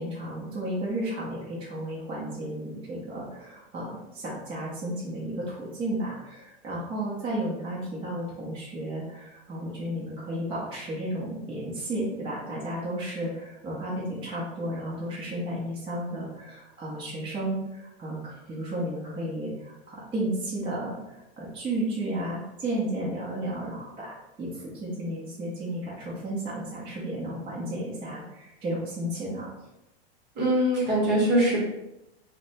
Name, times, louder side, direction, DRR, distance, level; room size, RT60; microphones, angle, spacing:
voice 1, 0.0-18.2 18.5-29.5, right 1 dB, 15° right, -7 dB, 0.7 m, -33 dB
voice 2, 30.4-31.6, right 1 dB, 35° right, -3 dB, 1.2 m, -22 dB
4.3 x 2.2 x 2.6 m, 0.91 s
supercardioid pair, 145°, 31 cm